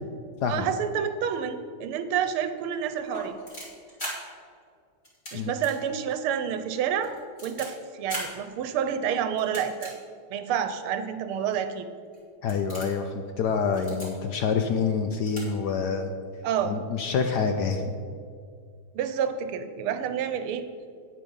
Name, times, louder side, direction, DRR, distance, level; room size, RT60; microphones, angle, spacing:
voice 1, 0.5-3.4 5.3-7.2 7.4-9.9 10.3-11.9 16.4-16.7 18.9-20.6, right 8 dB, 80° right, 9 dB, 1.6 m, -29 dB
sound 1, 3.0-4.1 5.0-5.3 5.6-5.8 6.1-6.2 6.8-7.7 8.1-8.3 9.4-9.9 10.6-10.7 11.5-11.6 12.1-12.2 12.5-13.0 13.7-14.1 15.0-15.1 15.3-15.4 15.7-15.8, equal, 30° left, 3.2 m, -37 dB
voice 2, 12.4-16.1 16.6-17.8, left 5 dB, 70° left, 6 dB, 1.0 m, -27 dB
9.5 x 8.5 x 5.4 m, 2.2 s
omnidirectional pair, 2.4 m